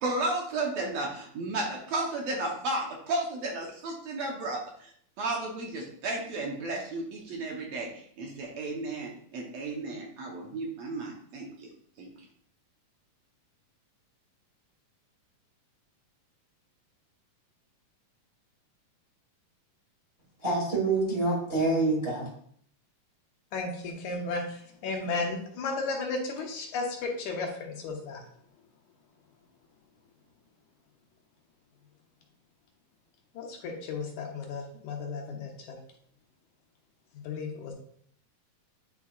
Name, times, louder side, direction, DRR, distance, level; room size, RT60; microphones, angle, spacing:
voice 1, 0.0-4.9 5.2-11.7 12.0-12.1, right 2 dB, 65° right, 0 dB, 1.9 m, -33 dB
voice 2, 20.4-22.3, right 2 dB, 35° right, -5 dB, 0.9 m, -26 dB
voice 3, 23.5-28.2 33.3-35.8 37.1-37.7, left 3 dB, 70° left, 1 dB, 2.3 m, -34 dB
9.7 x 4.6 x 2.4 m, 0.62 s
omnidirectional pair, 3.7 m